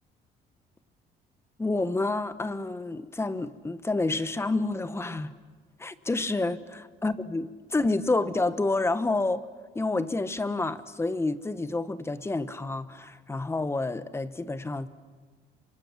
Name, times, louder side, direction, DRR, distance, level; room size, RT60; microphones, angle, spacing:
voice 1, 1.6-5.3 5.8-9.5 9.7-14.9, left 2 dB, 15° left, 12 dB, 1.2 m, -29 dB
27.5 x 25.0 x 7.4 m, 1.5 s
cardioid pair, 110°, 17 cm